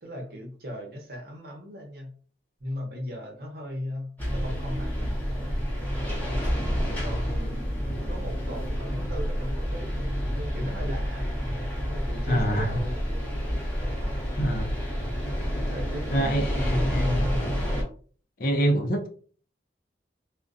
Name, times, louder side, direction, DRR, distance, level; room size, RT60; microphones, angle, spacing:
voice 1, 0.0-2.2 2.6-5.3 6.1-6.6 7.0-7.6 8.1-11.3 11.8-13.3 14.0-14.3 15.5-17.4, equal, 55° right, 0.8 m, -38 dB
sound 1, 4.2-17.8, equal, 10° left, 0.8 m, -29 dB
voice 2, 12.3-12.8 14.4-14.8 16.1-17.3 18.4-19.1, equal, 50° left, 0.4 m, -26 dB
2.4 x 2.1 x 2.5 m
head